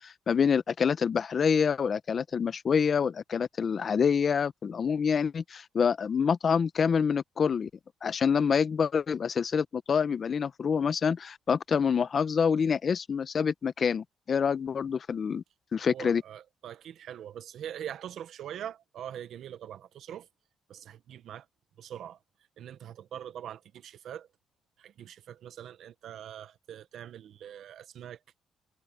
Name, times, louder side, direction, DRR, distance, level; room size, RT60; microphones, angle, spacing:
voice 1, 0.0-7.7 8.0-15.4 15.7-16.2, left 6 dB, 45° left, 0.9 m, -27 dB
voice 2, 15.9-20.3 20.7-21.5 21.8-22.2 22.6-24.3 24.8-28.2, right 10 dB, 70° right, 1.3 m, -43 dB
cardioid pair, 90°, 0 cm